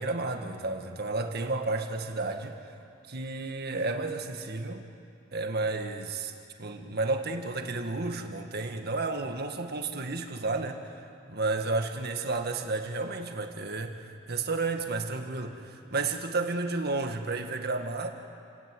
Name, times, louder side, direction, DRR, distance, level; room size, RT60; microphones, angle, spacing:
voice 1, 0.0-2.6 3.1-4.8 5.3-6.3 6.6-18.1, right 3 dB, 55° right, 5 dB, 1.8 m, -32 dB
29.5 x 18.0 x 7.8 m, 2.5 s
head